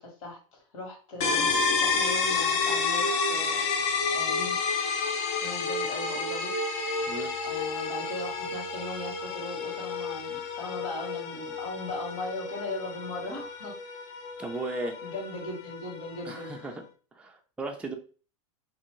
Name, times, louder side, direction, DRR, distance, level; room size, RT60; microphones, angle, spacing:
voice 1, 0.0-1.5 1.8-3.7 4.1-5.1 5.4-6.6 7.4-13.7 15.0-16.5, left 2 dB, 70° left, 0 dB, 1.4 m, -39 dB
sound 1, 1.2-16.8, left 4 dB, 50° left, 0.7 m, -30 dB
voice 2, 14.4-14.9 16.3-16.8 17.2-17.9, right 2 dB, 5° right, 3 dB, 0.4 m, -36 dB
2.5 x 2.5 x 3.0 m, 0.38 s
hypercardioid pair, 115°, 17 cm